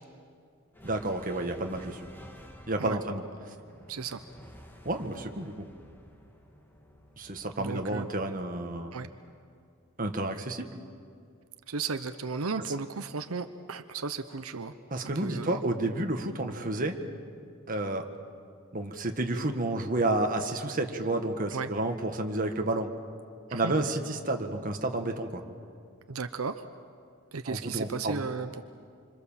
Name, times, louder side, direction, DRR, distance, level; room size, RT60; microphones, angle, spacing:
sound 1, 0.7-9.3, equal, 10° left, 1.7 m, -52 dB
voice 1, 0.8-2.0 2.7-3.2 4.8-5.7 7.2-9.0 10.0-10.7 14.9-17.0 17.7-18.1 18.7-22.9 23.5-25.4 27.5-28.2, right 2 dB, 40° right, 4 dB, 1.7 m, -30 dB
voice 2, 3.9-4.2 7.6-8.1 8.9-9.1 11.7-14.7 15.1-15.6 21.5-21.7 23.5-23.7 26.1-26.6 27.3-28.6, right 4 dB, 85° right, 9 dB, 0.9 m, -35 dB
26.5 x 26.0 x 7.4 m, 2.3 s
head